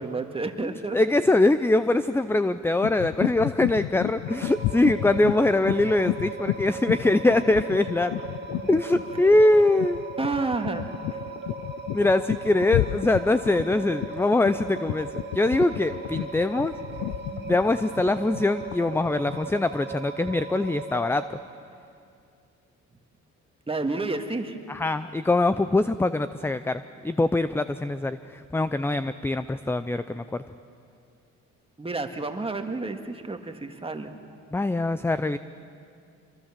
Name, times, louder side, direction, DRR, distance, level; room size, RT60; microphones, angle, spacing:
voice 1, 0.0-1.0 10.2-10.9 23.7-24.6 31.8-34.1, right 3 dB, 20° right, 5 dB, 2.0 m, -30 dB
voice 2, 0.6-8.2 8.7-10.0 11.9-15.1 15.3-16.7 17.5-21.2 24.7-30.4 34.5-35.4, left 2 dB, 10° left, 12 dB, 0.5 m, -23 dB
sound 1, 2.8-19.6, left 16 dB, 85° left, 0.5 m, -32 dB
sound 2, 4.3-21.3, right 4 dB, 35° right, 2.0 m, -38 dB
25.5 x 22.5 x 7.5 m, 2.4 s
cardioid pair, 90°, 30 cm